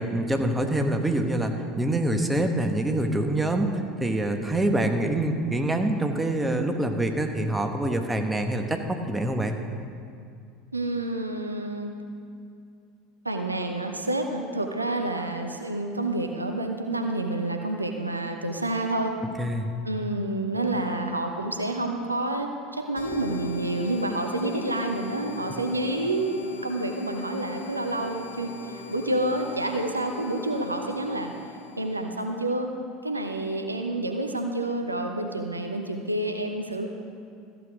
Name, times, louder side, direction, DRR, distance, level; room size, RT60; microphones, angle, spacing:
voice 1, 0.0-9.6 19.4-19.7, right 1 dB, 10° right, 5 dB, 1.1 m, -25 dB
voice 2, 10.7-11.9 13.2-19.1 19.8-31.3 31.8-32.7 33.0-36.9, right 2 dB, 90° right, 4 dB, 0.8 m, -29 dB
sound 1, 23.0-32.3, left 3 dB, 75° left, 1.0 m, -40 dB
14.0 x 8.1 x 5.1 m, 2.3 s
figure-of-eight pair, 75°, 0 cm